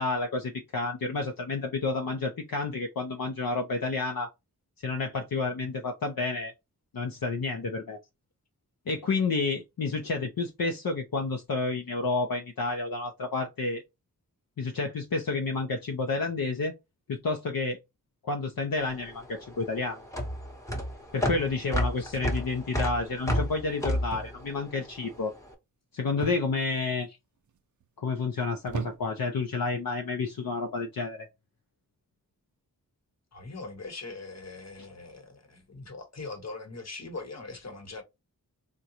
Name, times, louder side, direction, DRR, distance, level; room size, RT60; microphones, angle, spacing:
voice 1, 0.0-4.3 4.8-6.5 6.9-8.0 8.9-13.8 14.6-16.7 17.1-17.8 18.2-20.0 21.1-25.3 25.9-27.1 28.0-31.3, left 3 dB, 70° left, 0.6 m, -30 dB
sound 1, 18.8-25.3, equal, 10° left, 0.9 m, -31 dB
sound 2, 22.1-22.7 24.1-24.5 24.8-25.2 26.2-26.8 27.5-27.9 28.7-29.3 30.3-30.5, right 7 dB, 55° right, 0.4 m, -39 dB
voice 2, 33.3-38.0, left 3 dB, 45° left, 1.0 m, -41 dB
3.8 x 2.2 x 2.8 m
wide cardioid pair, 55°, 36 cm